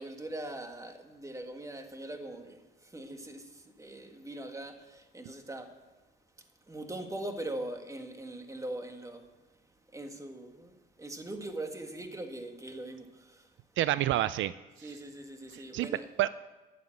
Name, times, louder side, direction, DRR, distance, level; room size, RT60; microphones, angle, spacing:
voice 1, 0.0-5.7 6.7-9.3 9.9-13.5 14.8-16.1, right 1 dB, 15° right, 1.7 m, -41 dB
voice 2, 13.8-14.5 14.8-15.0 15.5-15.9 16.2-16.3, right 14 dB, 75° right, 0.4 m, -29 dB
10.0 x 9.5 x 7.7 m
cardioid pair, 90°, 20 cm